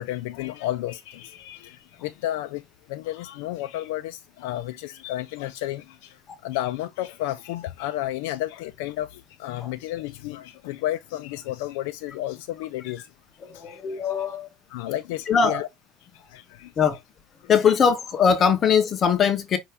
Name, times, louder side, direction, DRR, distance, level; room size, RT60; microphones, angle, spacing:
voice 1, 0.0-2.6 2.9-6.2 6.4-13.0 13.7-13.8 14.7-15.7 16.3-16.7, left 14 dB, 80° left, 0.4 m, -32 dB
voice 2, 13.4-14.5 15.3-15.6 16.8-17.0 17.5-19.6, left 6 dB, 30° left, 0.9 m, -21 dB
5.6 x 2.6 x 3.5 m
cardioid pair, 140°, 0 cm